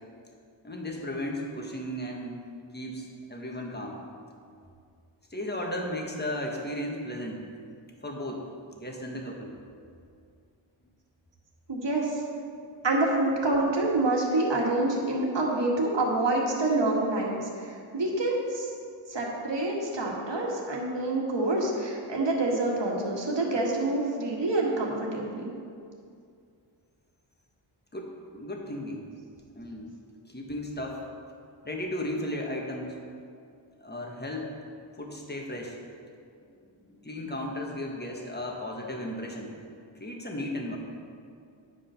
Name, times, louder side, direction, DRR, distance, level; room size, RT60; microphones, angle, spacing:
voice 1, 0.6-2.4 2.7-4.0 5.3-7.4 8.0-8.5 8.7-9.6 27.9-29.1 29.5-29.9 30.3-31.0 31.6-33.0 33.8-34.6 35.0-35.8 36.4-36.6 36.8-39.5 39.9-40.8, left 1 dB, 20° left, 0 dB, 1.4 m, -35 dB
voice 2, 11.7-12.2 12.8-18.7 19.1-25.4, right 2 dB, 60° right, -2 dB, 1.8 m, -27 dB
9.7 x 5.0 x 5.7 m, 2.4 s
wide cardioid pair, 80°, 48 cm